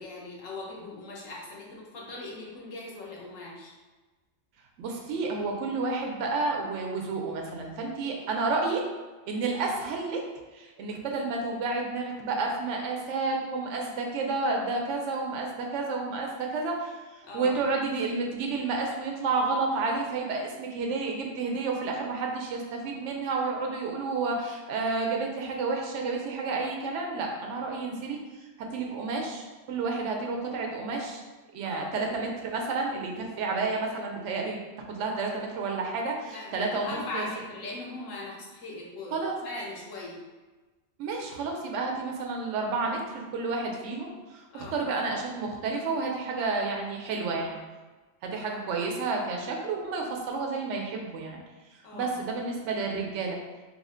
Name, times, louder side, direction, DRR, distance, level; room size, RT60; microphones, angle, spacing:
voice 1, 0.0-3.7 17.2-17.6 31.6-32.0 36.3-40.2 44.5-44.8 48.2-48.9 51.8-52.2, left 2 dB, 85° left, -3 dB, 1.2 m, -40 dB
voice 2, 4.8-8.8 9.2-10.2 10.5-28.2 28.7-31.2 31.5-34.6 34.9-37.3 39.1-39.4 41.0-47.6 48.2-51.4 51.7-53.4, right 3 dB, 75° right, 1 dB, 0.9 m, -30 dB
3.2 x 2.1 x 3.7 m, 1.3 s
omnidirectional pair, 1.3 m